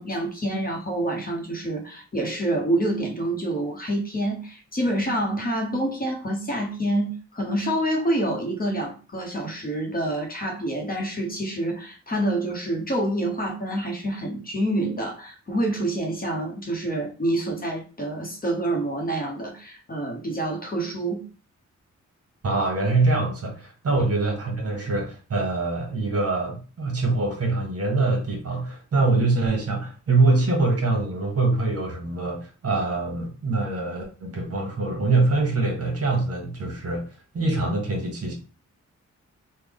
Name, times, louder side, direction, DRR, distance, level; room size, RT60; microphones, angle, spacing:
voice 1, 0.0-21.3, right 1 dB, 30° left, 1 dB, 0.8 m, -27 dB
voice 2, 22.4-37.1 37.3-38.3, right 3 dB, 55° right, 1 dB, 1.1 m, -24 dB
3.4 x 2.1 x 3.5 m, 0.36 s
wide cardioid pair, 120°, 30 cm